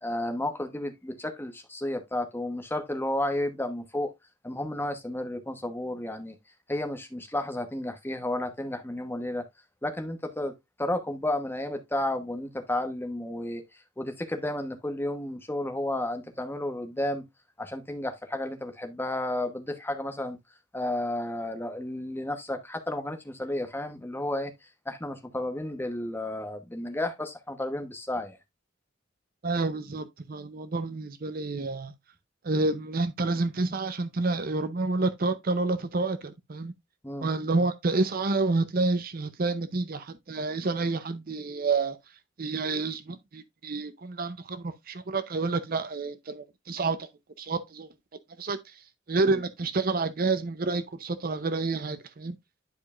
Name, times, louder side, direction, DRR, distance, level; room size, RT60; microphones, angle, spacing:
voice 1, 0.0-4.1 4.4-6.3 6.7-9.4 9.8-13.6 14.0-17.2 17.6-20.4 20.7-28.4 37.0-37.3 49.2-49.4, left 1 dB, 10° left, 1.0 m, -32 dB
voice 2, 29.4-31.9 32.4-36.7 37.2-42.0 42.4-47.1 47.4-47.9 48.4-48.6 49.1-52.4, right 3 dB, 50° right, 0.6 m, -29 dB
10.5 x 4.8 x 2.4 m
head